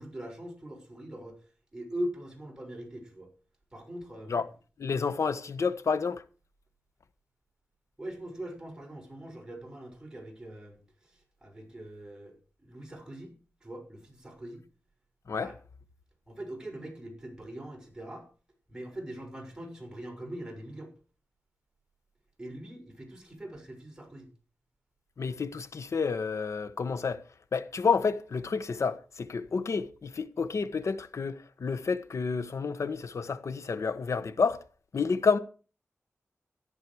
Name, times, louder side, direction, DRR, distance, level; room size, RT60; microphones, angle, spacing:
voice 1, 0.0-1.4 1.7-3.3 3.7-4.5 8.0-12.4 12.6-13.3 13.6-14.6 15.3-15.6 16.3-18.3 18.7-20.9 22.4-24.3, right 1 dB, 15° right, 6.4 m, -41 dB
voice 2, 4.8-6.2 15.3-15.5 25.2-27.2 27.5-34.6 34.9-35.4, left 5 dB, 70° left, 1.2 m, -29 dB
14.0 x 11.0 x 4.8 m
wide cardioid pair, 85°, 5 cm